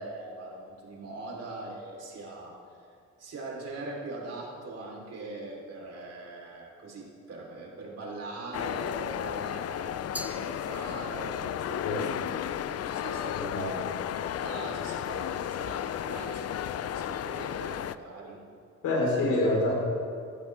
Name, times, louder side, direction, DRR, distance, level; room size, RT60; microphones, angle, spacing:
voice 1, 0.0-2.6 3.2-13.5 14.2-18.4, right 2 dB, 55° right, -2 dB, 4.3 m, -41 dB
sound 1, 8.5-18.0, left 10 dB, 55° left, 0.6 m, -33 dB
Glass, 10.1-11.4, equal, 5° right, 0.9 m, -42 dB
voice 2, 13.3-13.9 18.8-19.7, left 2 dB, 90° left, -2 dB, 4.8 m, -27 dB
20.0 x 14.5 x 3.7 m, 2.3 s
cardioid pair, 90°, 30 cm